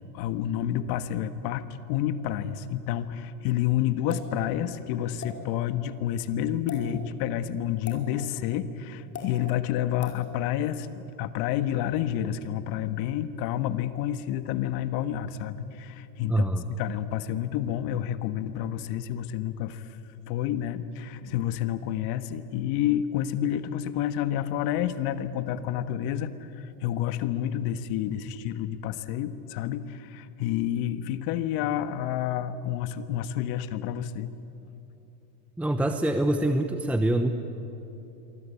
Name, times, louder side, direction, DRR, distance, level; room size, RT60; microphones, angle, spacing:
voice 1, 0.1-20.0 20.3-34.3, left 11 dB, 50° left, 11 dB, 1.6 m, -29 dB
sound 1, 4.1-4.3 5.2-5.3 6.6-6.8 7.8-8.0 9.1-9.3 10.0-10.2, left 7 dB, 30° left, 5.2 m, -38 dB
voice 2, 16.3-16.7 35.6-37.3, right 1 dB, 5° right, 7 dB, 0.9 m, -25 dB
26.5 x 24.0 x 8.5 m, 3.0 s
supercardioid pair, 130°, 47 cm